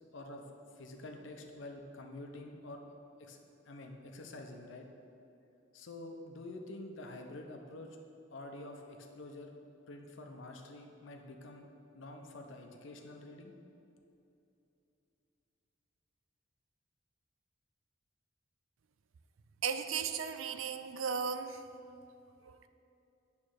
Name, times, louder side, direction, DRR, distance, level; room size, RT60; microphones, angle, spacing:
voice 1, 0.1-2.9 3.2-3.4 3.7-4.9 5.7-8.0 8.3-9.6 9.9-13.5, left 2 dB, 75° left, 3 dB, 0.7 m, -48 dB
voice 2, 19.6-21.6, right 6 dB, 90° right, 10 dB, 0.4 m, -35 dB
9.6 x 3.2 x 6.4 m, 2.7 s
head